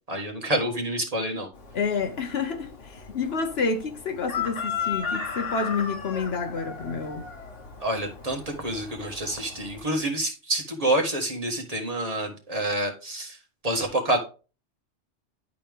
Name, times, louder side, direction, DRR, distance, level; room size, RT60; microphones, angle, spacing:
voice 1, 0.1-1.5 7.8-13.4 13.6-14.2, right 1 dB, 30° right, 1.5 m, -27 dB
Chicken rooster, 1.5-9.8, left 6 dB, 80° left, 1.6 m, -36 dB
voice 2, 1.7-7.3, left 5 dB, 60° left, 1.0 m, -29 dB
11.0 x 4.3 x 3.5 m
omnidirectional pair, 1.2 m